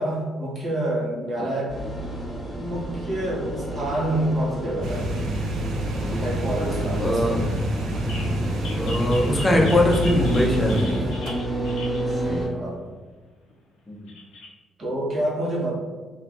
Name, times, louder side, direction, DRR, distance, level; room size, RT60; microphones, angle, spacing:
voice 1, 0.0-1.9 2.5-5.1 6.1-7.6 12.1-12.8 14.8-15.7, right 1 dB, 45° right, -4 dB, 1.1 m, -28 dB
sound 1, 1.7-12.5, right 1 dB, ahead, 1.1 m, -30 dB
sound 2, 4.8-11.3, equal, 75° right, 0.4 m, -28 dB
voice 2, 7.0-7.4 8.8-11.1 13.9-14.1, left 1 dB, 20° left, -1 dB, 0.6 m, -21 dB
sound 3, 8.1-8.3 8.6-12.0 13.5-13.6 14.1-14.5, left 2 dB, 90° left, 0.6 m, -38 dB
3.2 x 2.3 x 2.5 m, 1.3 s
cardioid pair, 90°, 0 cm